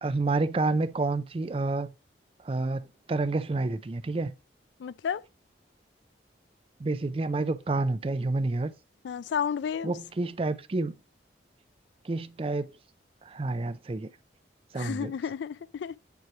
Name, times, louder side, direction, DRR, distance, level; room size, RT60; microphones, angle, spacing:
voice 1, 0.0-1.9 2.4-4.3 6.8-8.7 9.8-10.9 12.0-12.7 13.2-14.1 14.7-15.1, right 3 dB, 30° right, 0.4 m, -29 dB
voice 2, 4.8-5.2 9.0-9.9 14.8-16.0, left 7 dB, 75° left, 0.3 m, -32 dB
9.2 x 5.8 x 3.1 m
head